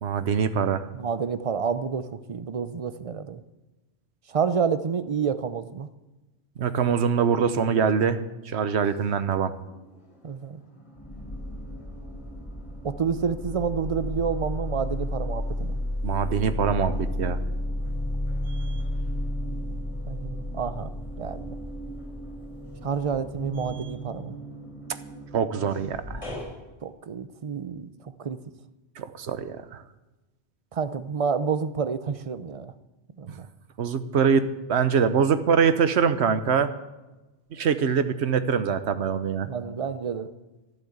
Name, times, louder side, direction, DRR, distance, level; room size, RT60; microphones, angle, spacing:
voice 1, 0.0-0.9 6.6-9.5 16.0-17.4 25.3-26.2 29.0-29.8 33.8-36.7 37.5-39.5, right 6 dB, 65° right, 12 dB, 1.1 m, -24 dB
voice 2, 0.9-3.4 4.3-5.9 10.2-10.6 12.8-15.8 20.1-20.9 21.2-21.6 22.8-24.4 26.8-28.4 30.7-32.7 33.2-33.5 39.4-40.3, right 6 dB, 40° right, 12 dB, 0.6 m, -29 dB
sound 1, 9.4-10.3 10.6-26.5, left 1 dB, 25° left, 4.1 m, -33 dB
12.0 x 11.0 x 7.9 m, 1.1 s
omnidirectional pair, 1.2 m